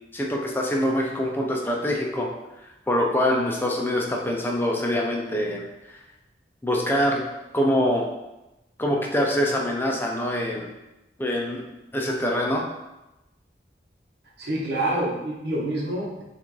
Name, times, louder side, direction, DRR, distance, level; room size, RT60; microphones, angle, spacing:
voice 1, 0.1-2.3 2.9-6.0 6.6-7.2 7.5-8.1 8.8-10.7 11.2-11.7 11.9-12.6, equal, 10° left, -1 dB, 0.5 m, -24 dB
voice 2, 14.4-16.2, right 1 dB, 70° right, -3 dB, 1.1 m, -27 dB
5.8 x 2.5 x 3.2 m, 0.99 s
head